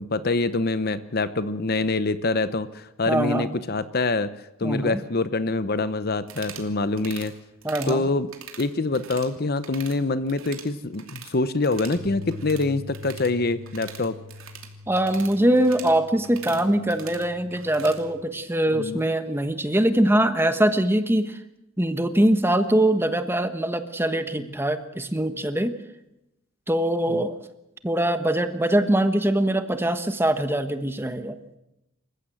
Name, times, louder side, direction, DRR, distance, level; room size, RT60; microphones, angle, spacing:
voice 1, 0.0-4.3 4.6-7.3 7.9-8.3 8.6-14.1 18.7-19.0 27.1-27.2, left 3 dB, 45° left, 13 dB, 0.8 m, -25 dB
voice 2, 3.1-3.5 4.6-5.0 7.6-8.0 14.9-21.4 21.8-25.8 26.7-27.4 27.8-31.4, right 1 dB, 10° right, 9 dB, 1.2 m, -22 dB
sound 1, 6.2-6.7 7.0-7.3 7.6-8.0 8.3-9.3 9.6-10.0 10.3-11.4 11.6-18.0, right 8 dB, 70° right, 2.8 m, -43 dB
sound 2, 12.0-18.2, left 2 dB, 55° right, 1.3 m, -43 dB
27.5 x 15.0 x 7.7 m, 0.91 s
head